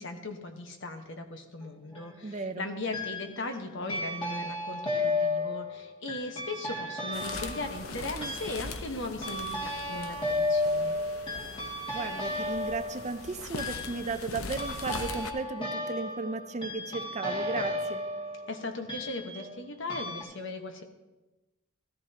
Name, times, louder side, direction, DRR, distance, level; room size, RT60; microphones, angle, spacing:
voice 1, 0.0-11.0 18.5-20.8, left 2 dB, 60° left, 5 dB, 1.2 m, -38 dB
sound 1, 1.6-2.2 2.9-3.6 3.9-19.6 19.9-20.2, left 2 dB, 25° left, 2.2 m, -34 dB
voice 2, 2.2-2.7 8.1-8.3 11.9-18.0, right 4 dB, 35° right, 10 dB, 0.5 m, -35 dB
sound 2, 7.1-15.3, left 4 dB, 85° left, 0.8 m, -41 dB
14.5 x 13.5 x 2.9 m, 1.1 s
head